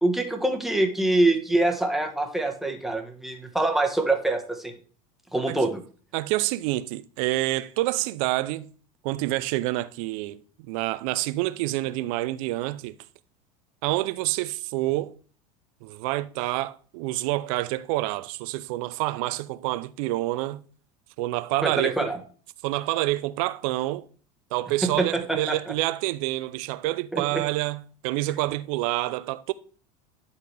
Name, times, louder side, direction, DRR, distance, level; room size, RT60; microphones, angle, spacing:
voice 1, 0.0-4.7 5.3-5.8 21.6-22.2 24.8-25.7 27.1-27.4, right 2 dB, ahead, 1.3 m, -25 dB
voice 2, 6.1-8.7 9.0-10.4 10.7-12.9 13.8-15.2 15.8-20.6 21.2-22.1 22.6-24.1 24.5-29.5, right 18 dB, 70° right, 0.5 m, -27 dB
10.5 x 4.1 x 3.4 m
supercardioid pair, 110°, 19 cm